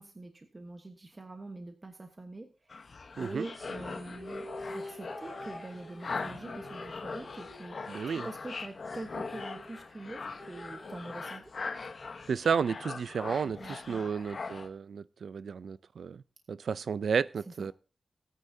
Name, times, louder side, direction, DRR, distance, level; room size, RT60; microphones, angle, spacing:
voice 1, 0.0-2.9 3.2-11.5 13.6-14.0 17.6-17.7, right 2 dB, 30° right, 5 dB, 1.2 m, -44 dB
sound 1, 2.7-14.7, left 4 dB, 55° left, 1.0 m, -41 dB
sound 2, 3.5-8.2 8.5-8.6 8.9-11.5, left 1 dB, 10° right, 7.2 m, -47 dB
voice 2, 7.9-8.3 12.3-16.2 16.5-17.7, right 6 dB, 90° right, 17 dB, 0.4 m, -32 dB
18.0 x 9.3 x 2.7 m, 0.35 s
wide cardioid pair, 120°, 0 cm